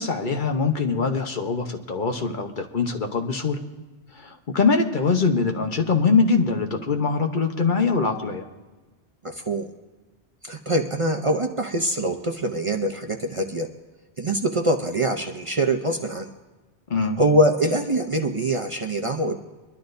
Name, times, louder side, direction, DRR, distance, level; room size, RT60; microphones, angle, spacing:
voice 1, 0.0-3.6 4.1-8.5 16.9-17.2, left 4 dB, 50° left, 4 dB, 1.0 m, -23 dB
voice 2, 9.2-9.7 10.4-13.7 14.2-16.3 17.0-19.4, right 1 dB, 35° right, 3 dB, 0.7 m, -24 dB
23.5 x 11.5 x 2.6 m, 1.2 s
omnidirectional pair, 1.1 m